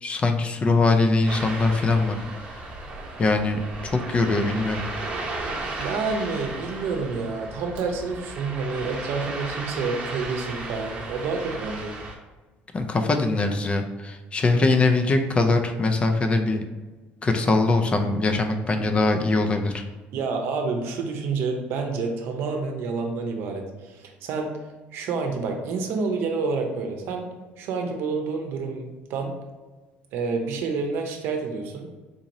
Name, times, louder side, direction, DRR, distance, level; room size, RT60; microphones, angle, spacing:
voice 1, 0.0-2.2 2.5-2.6 3.2-4.8 12.7-16.6 17.2-19.8, left 3 dB, 25° left, 6 dB, 0.4 m, -22 dB
Ocean, 1.3-12.1, right 2 dB, 30° right, 0.9 m, -35 dB
voice 2, 5.8-11.9 20.1-24.6 24.9-27.3 27.6-29.4 30.1-31.9, right 4 dB, 75° right, 3 dB, 0.7 m, -28 dB
3.9 x 2.9 x 2.6 m, 1.2 s
cardioid pair, 125°, 4 cm